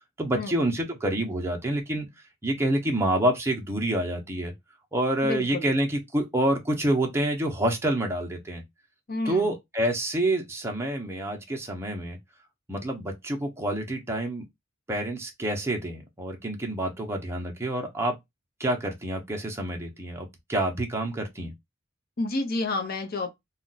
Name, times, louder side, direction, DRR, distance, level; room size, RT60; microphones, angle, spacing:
voice 1, 0.2-2.1 2.4-4.5 4.9-8.6 9.3-12.2 12.7-14.4 14.9-18.2 18.6-21.5, right 1 dB, 15° right, 0.7 m, -27 dB
voice 2, 5.2-5.7 9.1-9.6 22.2-23.3, left 2 dB, 50° left, 0.7 m, -29 dB
2.4 x 2.2 x 3.9 m
head